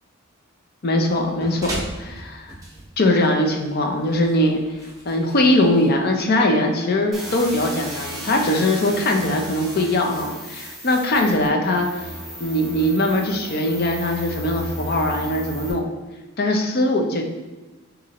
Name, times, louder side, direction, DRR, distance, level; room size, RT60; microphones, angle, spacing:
voice 1, 0.8-2.6 3.0-4.6 5.1-12.1 12.4-15.8 16.4-17.2, left 1 dB, 50° left, 3 dB, 0.5 m, -21 dB
sound 1, 1.1-6.4, right 1 dB, 15° right, 0.7 m, -38 dB
sound 2, 7.1-15.7, equal, ahead, 1.2 m, -34 dB
5.6 x 2.6 x 2.9 m, 1.2 s
head